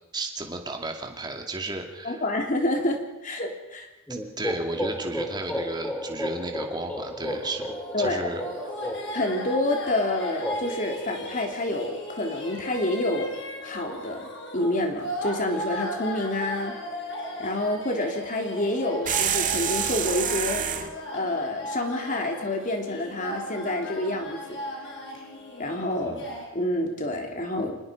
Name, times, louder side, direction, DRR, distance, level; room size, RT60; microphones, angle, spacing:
voice 1, 0.1-2.2 4.4-8.4 26.0-26.2, right 2 dB, 20° right, 3 dB, 2.4 m, -33 dB
voice 2, 2.0-3.9 7.9-8.4 9.1-16.8 17.4-20.7 21.1-24.9 25.6-26.2 26.5-27.8, left 1 dB, 40° left, 3 dB, 3.3 m, -28 dB
sound 1, 4.1-11.8, equal, 10° left, 2.5 m, -34 dB
sound 2, 7.2-26.5, left 1 dB, 60° left, 5.5 m, -37 dB
sound 3, 19.1-20.9, right 8 dB, 40° right, 1.8 m, -27 dB
26.5 x 19.5 x 5.2 m, 0.95 s
head